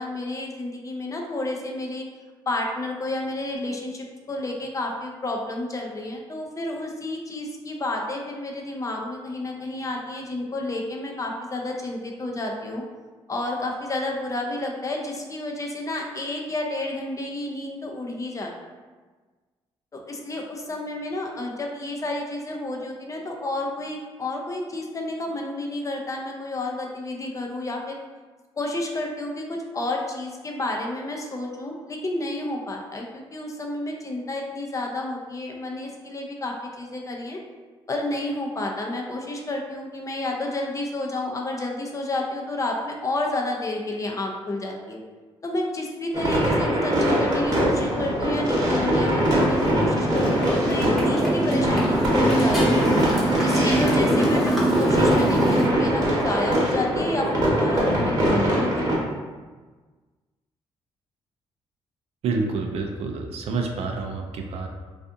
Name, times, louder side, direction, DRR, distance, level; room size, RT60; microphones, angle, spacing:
voice 1, 0.0-2.0 2.5-12.8 13.3-18.5 19.9-28.0 28.6-37.4 37.9-45.0 45.4-52.9 53.4-59.1, left 2 dB, 30° left, 1 dB, 0.5 m, -30 dB
sound 1, 46.1-59.0, equal, 35° right, 1.0 m, -22 dB
Motorcycle, 48.5-55.7, right 1 dB, ahead, 0.9 m, -24 dB
voice 2, 62.2-64.7, right 4 dB, 70° right, 2 dB, 0.4 m, -28 dB
2.4 x 2.4 x 2.5 m, 1.3 s
cardioid pair, 70°, 11 cm